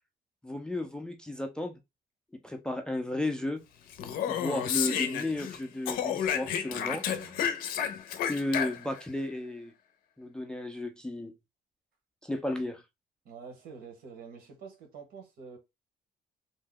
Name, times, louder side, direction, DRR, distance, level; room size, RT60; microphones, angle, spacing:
voice 1, 0.4-1.8 2.4-3.6 4.3-7.0 8.2-9.7 10.2-11.3 12.2-12.8, left 1 dB, 5° left, 0.3 m, -33 dB
Speech, 3.9-5.6 5.9-9.0, left 8 dB, 80° left, 0.5 m, -31 dB
voice 2, 6.7-7.5 13.2-15.6, right 5 dB, 80° right, 1.2 m, -47 dB
2.7 x 2.1 x 3.6 m
cardioid pair, 175°, 15 cm